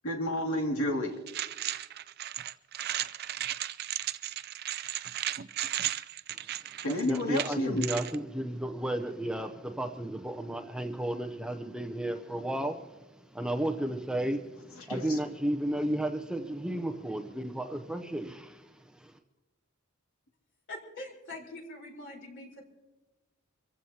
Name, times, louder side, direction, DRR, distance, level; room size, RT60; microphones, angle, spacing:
voice 1, 0.0-1.1 6.8-7.9 14.8-15.2, left 1 dB, 80° left, 1 dB, 2.4 m, -30 dB
sound 1, 1.3-8.2, right 12 dB, 50° right, 0.4 m, -35 dB
voice 2, 7.0-12.9 13.3-18.6, right 1 dB, 5° right, 6 dB, 0.6 m, -33 dB
voice 3, 20.7-22.6, left 1 dB, 55° left, 0 dB, 4.0 m, -43 dB
25.5 x 15.5 x 2.8 m, 1.1 s
head